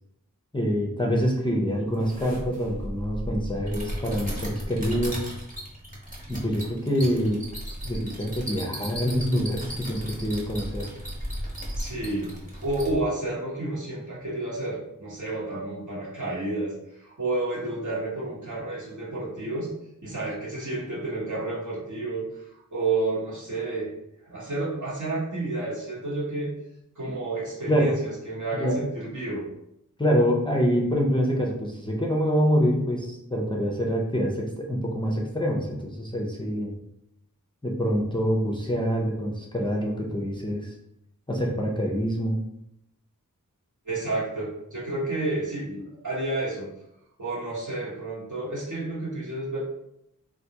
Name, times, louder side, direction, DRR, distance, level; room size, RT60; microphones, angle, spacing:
voice 1, 0.5-5.3 6.3-7.4 7.8-10.9 27.7-27.9 28.6-28.8 30.0-36.8 37.6-40.7 41.3-42.4, equal, 15° left, -2 dB, 0.5 m, -26 dB
sound 1, 1.9-13.0, equal, 25° right, 1.1 m, -36 dB
voice 2, 11.8-12.3 12.6-19.7 20.0-23.9 24.2-26.5 27.0-29.5 43.8-46.7 47.2-49.6, right 2 dB, 60° right, -6 dB, 1.2 m, -30 dB
3.4 x 2.5 x 2.8 m, 0.81 s
wide cardioid pair, 60°, 34 cm